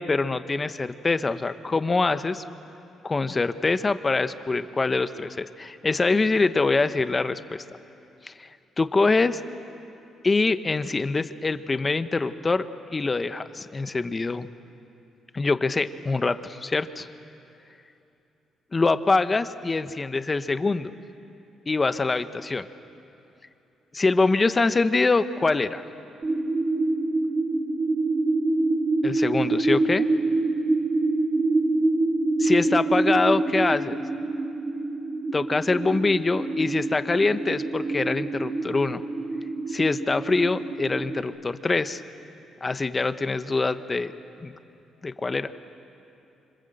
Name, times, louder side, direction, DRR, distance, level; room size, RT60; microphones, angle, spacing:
voice 1, 0.0-2.4 3.0-7.6 8.2-8.5 8.8-9.4 10.2-12.6 12.9-14.5 15.3-17.1 18.7-20.9 21.7-22.6 23.9-25.8 29.0-30.1 32.4-34.0 35.3-39.0 39.7-42.0 42.6-44.1 44.4-44.5 45.0-45.5, left 3 dB, 25° left, 11 dB, 1.0 m, -24 dB
sound 1, 26.2-41.2, right 2 dB, 35° right, 3.6 m, -26 dB
27.0 x 25.0 x 7.9 m, 2.9 s
cardioid pair, 90°, 0 cm